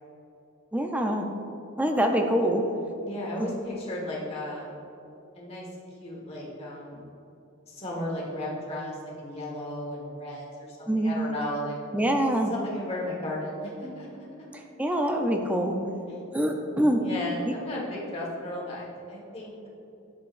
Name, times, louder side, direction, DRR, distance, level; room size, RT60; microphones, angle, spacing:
voice 1, 0.7-1.3 1.8-2.6 3.4-3.5 10.9-11.3 11.9-12.5 14.8-15.8 16.3-17.0, right 1 dB, 5° right, 3 dB, 0.5 m, -25 dB
voice 2, 3.0-4.7 5.3-5.7 6.0-7.0 7.7-11.7 12.5-14.1 16.1-16.2 17.0-19.7, left 1 dB, 30° left, -4 dB, 1.5 m, -35 dB
10.0 x 6.8 x 2.5 m, 2.9 s
head